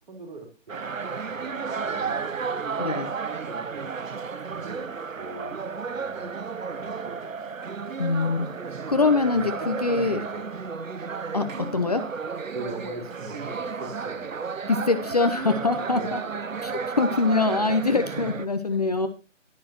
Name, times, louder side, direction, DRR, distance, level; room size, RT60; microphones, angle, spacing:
voice 1, 0.0-4.0 4.5-4.9 5.2-7.6 9.6-10.6 12.5-14.7 15.8-16.8 17.2-17.3 17.9-18.2 18.5-19.1, right 2 dB, 40° right, 2 dB, 4.1 m, -42 dB
sound 1, 0.7-18.5, right 5 dB, 85° right, 1.0 m, -33 dB
voice 2, 2.8-3.1 8.0-8.5 8.9-10.2 11.3-12.0 14.7-16.2 16.6-16.7 17.0-19.1, left 3 dB, 30° left, 7 dB, 0.8 m, -23 dB
12.5 x 11.0 x 2.9 m, 0.32 s
figure-of-eight pair, 160°, 38 cm